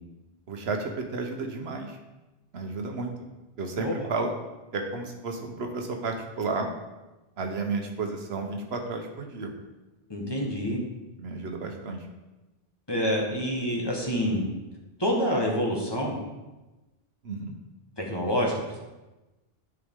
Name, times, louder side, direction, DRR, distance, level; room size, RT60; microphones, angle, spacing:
voice 1, 0.5-2.0 2.5-3.1 3.6-4.3 4.7-6.7 7.4-9.5 11.2-12.1 17.2-17.5, right 3 dB, 75° right, 3 dB, 1.2 m, -32 dB
voice 2, 3.8-4.1 10.1-10.8 12.9-14.4 15.0-16.2 18.0-18.8, equal, 25° left, -2 dB, 1.3 m, -27 dB
10.0 x 4.9 x 3.6 m, 1.1 s
omnidirectional pair, 1.1 m